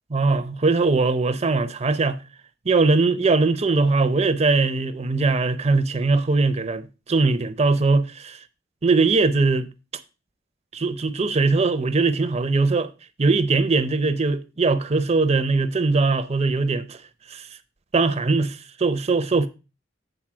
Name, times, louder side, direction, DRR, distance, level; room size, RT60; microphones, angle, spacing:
voice 1, 0.1-2.2 2.7-8.4 8.8-9.7 10.7-12.9 13.2-17.0 17.3-17.4 17.9-19.5, right 3 dB, 35° right, 0.6 m, -21 dB
8.9 x 4.0 x 6.0 m
head